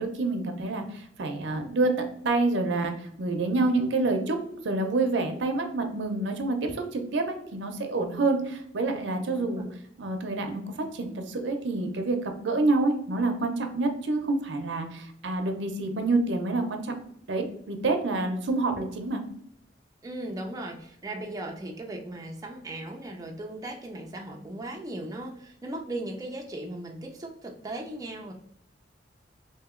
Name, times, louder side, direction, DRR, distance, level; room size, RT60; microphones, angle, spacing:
voice 1, 0.0-4.4 4.6-9.6 10.0-17.0 17.3-19.2, right 2 dB, 75° right, 5 dB, 0.6 m, -27 dB
voice 2, 9.4-9.7 18.1-18.2 20.0-28.3, right 1 dB, 20° right, 1 dB, 0.4 m, -37 dB
2.8 x 2.7 x 3.6 m, 0.71 s
head